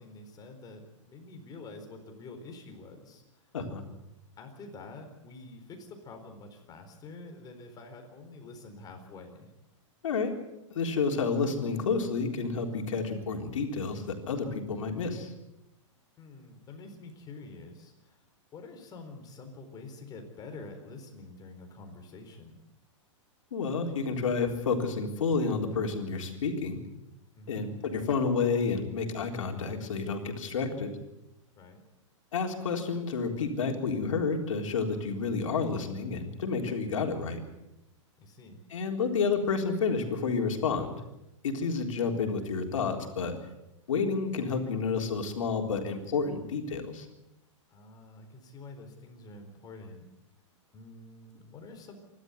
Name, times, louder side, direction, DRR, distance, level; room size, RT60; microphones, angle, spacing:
voice 1, 0.0-3.2 4.4-9.5 16.2-18.2 18.5-22.6 27.3-27.6 31.6-31.8 38.2-38.6 47.7-50.1 50.7-51.9, left 3 dB, 25° left, 4 dB, 4.2 m, -47 dB
voice 2, 10.7-15.3 23.5-26.8 27.5-30.9 32.3-37.4 38.7-40.9 41.4-43.3 43.9-47.1, left 5 dB, 80° left, 3 dB, 3.9 m, -30 dB
27.5 x 12.5 x 8.1 m, 0.93 s
hypercardioid pair, 135°, 17 cm